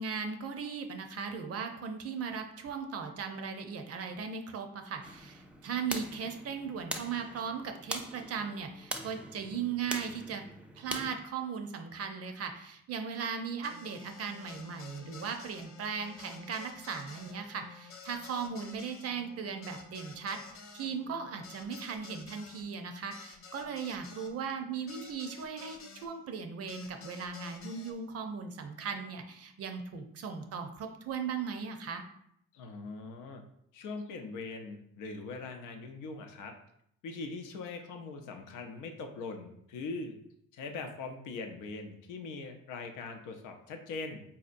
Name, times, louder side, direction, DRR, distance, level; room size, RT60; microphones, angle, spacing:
voice 1, 0.0-10.4 10.8-20.4 20.7-32.0, right 6 dB, 55° right, 6 dB, 0.5 m, -38 dB
sound 1, 5.0-11.1, right 1 dB, 5° right, 0.3 m, -42 dB
sound 2, 13.6-26.1 26.7-27.9, left 5 dB, 45° left, 0.6 m, -51 dB
voice 2, 32.5-33.4 33.7-36.5 37.0-40.2 40.5-44.2, left 3 dB, 90° left, 5 dB, 0.6 m, -41 dB
4.1 x 2.7 x 2.5 m, 0.71 s
cardioid pair, 90°, 30 cm